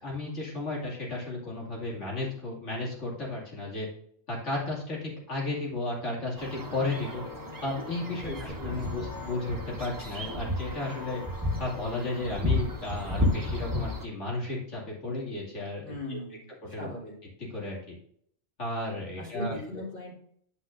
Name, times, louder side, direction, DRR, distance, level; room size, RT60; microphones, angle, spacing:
voice 1, 0.0-3.9 4.3-7.2 7.6-8.3 8.6-11.2 11.6-16.2 16.7-17.1 17.5-18.0 18.6-19.6, left 2 dB, 90° left, -4 dB, 2.8 m, -34 dB
sound 1, 6.4-14.0, left 1 dB, 20° right, 0.9 m, -32 dB
voice 2, 8.2-9.0 15.8-17.2 19.2-20.1, left 1 dB, 55° left, -7 dB, 3.1 m, -39 dB
9.7 x 5.9 x 2.5 m, 0.66 s
omnidirectional pair, 1.2 m